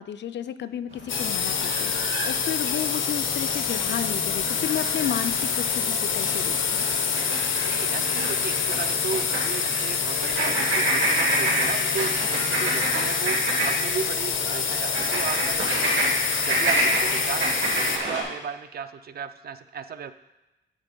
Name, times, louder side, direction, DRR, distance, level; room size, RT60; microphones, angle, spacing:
voice 1, 0.0-6.9, left 10 dB, 65° left, 12 dB, 0.4 m, -32 dB
sound 1, 0.9-18.2, right 1 dB, 80° right, 2.3 m, -29 dB
sound 2, 1.1-18.0, left 6 dB, 90° left, 0.8 m, -26 dB
voice 2, 7.6-20.1, right 6 dB, 55° right, 11 dB, 0.4 m, -35 dB
8.9 x 4.1 x 5.2 m, 1.0 s
wide cardioid pair, 160°, 20 cm